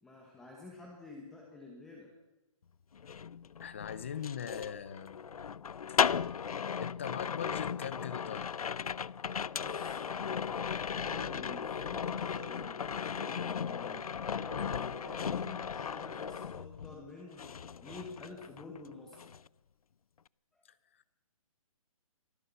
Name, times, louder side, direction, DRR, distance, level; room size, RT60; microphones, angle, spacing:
voice 1, 0.0-2.1 9.5-19.2 20.5-20.6, left 2 dB, 5° left, -1 dB, 1.2 m, -49 dB
sound 1, 2.9-17.1 17.4-18.9 19.1-19.5, left 7 dB, 85° left, 0.6 m, -36 dB
voice 2, 3.6-5.2 6.8-8.5, left 8 dB, 20° left, 16 dB, 0.8 m, -40 dB
24.5 x 14.5 x 8.3 m, 1.0 s
hypercardioid pair, 180°, 18 cm